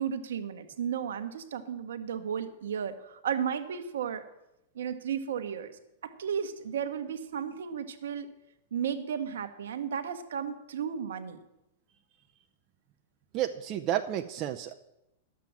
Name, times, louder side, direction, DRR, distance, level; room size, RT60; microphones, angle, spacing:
voice 1, 0.0-4.3 4.7-8.3 8.7-11.4, right 8 dB, 75° right, 8 dB, 1.2 m, -34 dB
voice 2, 13.3-14.7, right 11 dB, 40° right, 5 dB, 0.6 m, -31 dB
11.5 x 7.6 x 7.3 m, 0.90 s
hypercardioid pair, 110°, 0 cm